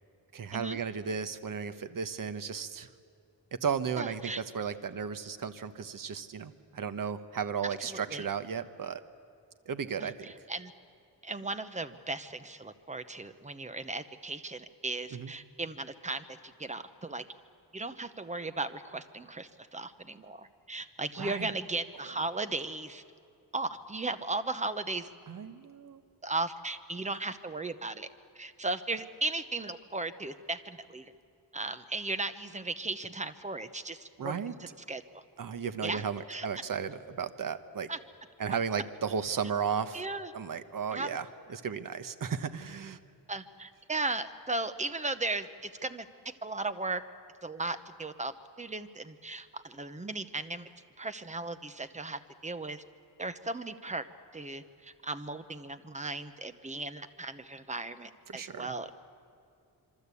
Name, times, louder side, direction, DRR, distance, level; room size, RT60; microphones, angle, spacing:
voice 1, 0.3-2.9 3.6-9.0 9.7-10.3 15.1-15.3 21.2-21.5 25.3-26.0 34.2-34.5 35.4-37.9 38.4-40.0 40.3-43.0 58.3-58.7, right 6 dB, 55° right, 11 dB, 1.1 m, -34 dB
voice 2, 4.0-4.4 7.6-8.3 10.0-10.7 11.2-17.2 17.7-23.0 23.5-25.1 26.2-28.1 28.3-31.1 31.5-35.2 35.8-36.5 37.9-38.0 39.9-40.3 40.9-41.1 43.3-46.1 46.4-47.0 47.4-50.7 51.0-52.8 53.2-54.0 54.3-58.9, right 2 dB, 20° right, 11 dB, 0.9 m, -36 dB
26.5 x 24.0 x 8.4 m, 2.4 s
wide cardioid pair, 165°, 40 cm